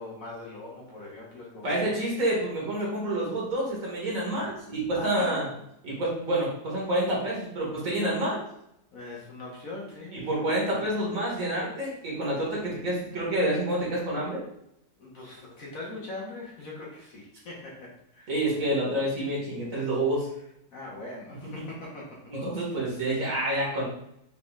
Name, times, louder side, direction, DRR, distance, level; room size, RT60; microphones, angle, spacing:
voice 1, 0.0-2.0 4.9-5.4 8.9-10.6 15.0-18.5 20.7-22.3, left 2 dB, 60° left, -4 dB, 1.5 m, -41 dB
voice 2, 1.6-5.4 5.8-8.4 10.1-14.4 18.3-20.3 22.3-23.8, right 1 dB, 55° right, -5 dB, 2.0 m, -28 dB
5.5 x 3.8 x 2.4 m, 0.78 s
omnidirectional pair, 1.7 m